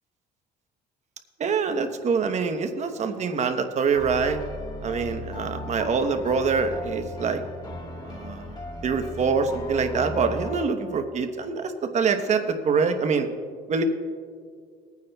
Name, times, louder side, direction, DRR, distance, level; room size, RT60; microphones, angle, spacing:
voice 1, 1.4-4.4 4.8-7.4 8.0-8.6 8.8-13.3 13.7-13.8, right 5 dB, 45° right, 7 dB, 1.0 m, -25 dB
sound 1, 2.8-3.4 3.9-10.7, left 2 dB, 25° left, 1.5 m, -37 dB
22.0 x 9.4 x 2.3 m, 2.1 s
cardioid pair, 110°, 17 cm